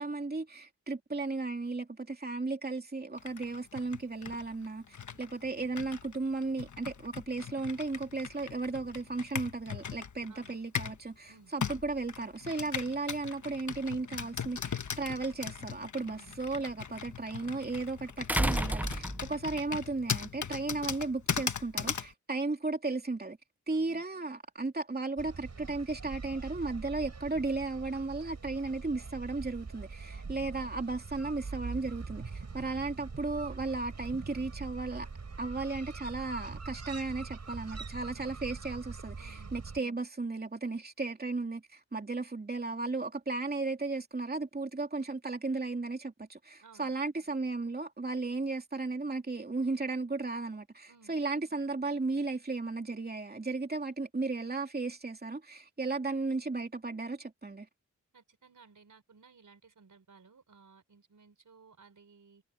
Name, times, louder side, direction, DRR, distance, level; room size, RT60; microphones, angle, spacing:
voice 1, 0.0-4.8 5.2-23.4 23.7-35.1 35.4-57.7, right 3 dB, 30° right, 2.8 m, -35 dB
Computer keyboard, 3.2-11.0 11.6-22.1, left 7 dB, 70° left, 1.3 m, -39 dB
sound 1, 15.0-15.1 18.3-19.6 20.9-21.0, right 1 dB, 5° right, 0.6 m, -30 dB
voice 2, 23.7-24.0 30.1-30.6 38.1-38.4 39.2-39.5 46.6-46.9 50.9-51.1 58.1-62.4, right 5 dB, 75° right, 5.0 m, -59 dB
sound 2, 25.2-39.8, right 4 dB, 55° right, 7.3 m, -43 dB
wide cardioid pair, 115°, 31 cm